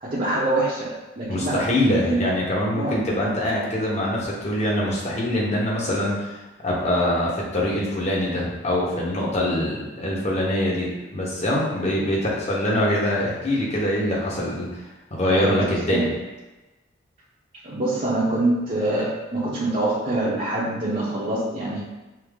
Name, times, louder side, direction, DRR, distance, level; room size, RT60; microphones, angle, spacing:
voice 1, 0.0-2.2 2.7-3.0 15.3-16.1 17.6-21.8, right 2 dB, 40° right, -8 dB, 0.7 m, -25 dB
voice 2, 1.3-6.3 6.6-14.7 15.1-16.1, left 1 dB, 35° left, -5 dB, 1.1 m, -24 dB
5.7 x 2.0 x 3.5 m, 1.1 s
head